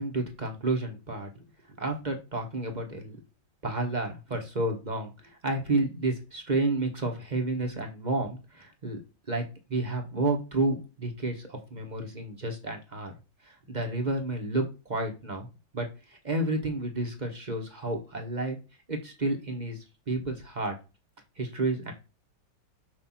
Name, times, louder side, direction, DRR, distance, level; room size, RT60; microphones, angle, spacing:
voice 1, 0.0-3.2 3.6-9.0 9.3-13.1 13.4-15.5 15.7-18.6 18.9-20.8 21.4-21.9, right 2 dB, 25° right, 3 dB, 1.2 m, -31 dB
6.7 x 2.8 x 5.7 m, 0.29 s
omnidirectional pair, 2.2 m